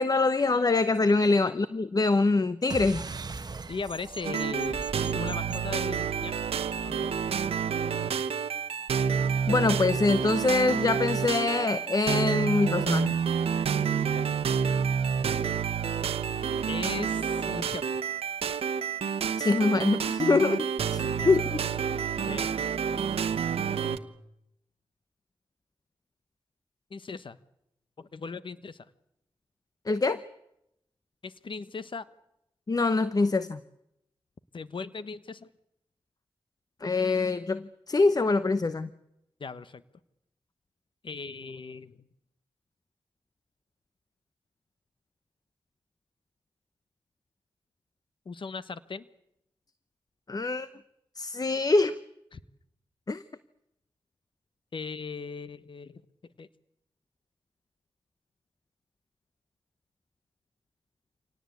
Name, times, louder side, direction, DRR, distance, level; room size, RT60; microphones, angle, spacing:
voice 1, 0.0-3.0 9.5-13.2 19.4-21.6 29.9-30.2 32.7-33.6 36.8-38.9 50.3-50.7 51.2-51.9 53.1-53.2, left 3 dB, 40° left, 14 dB, 0.9 m, -24 dB
sound 1, 2.7-7.6, right 3 dB, 45° right, 1.0 m, -41 dB
voice 2, 3.7-6.4 6.8-7.2 13.9-14.3 16.7-17.9 21.0-21.3 22.3-23.1 26.9-27.4 28.0-28.9 31.2-32.1 34.5-35.5 39.4-39.8 41.0-42.0 48.2-49.1 52.3-52.4 54.7-56.0 56.4-56.5, left 4 dB, 60° left, 14 dB, 1.2 m, -38 dB
sound 2, 4.2-24.0, right 7 dB, 90° right, 1.0 m, -29 dB
26.0 x 18.5 x 8.4 m, 0.82 s
cardioid pair, 50°, 10 cm